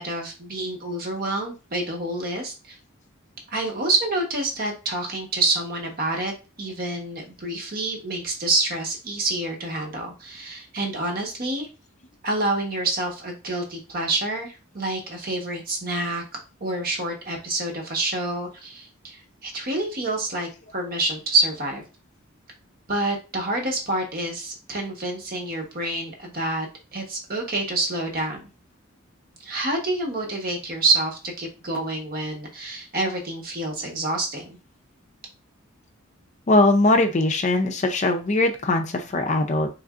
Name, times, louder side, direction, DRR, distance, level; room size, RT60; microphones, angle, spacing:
voice 1, 0.0-2.8 3.5-6.3 6.6-11.7 12.2-16.2 16.6-21.8 22.9-26.7 26.9-28.5 29.4-34.6, right 2 dB, 45° right, 1 dB, 1.1 m, -27 dB
voice 2, 36.5-39.7, left 2 dB, 35° left, 4 dB, 0.5 m, -20 dB
3.8 x 3.3 x 2.4 m, 0.31 s
head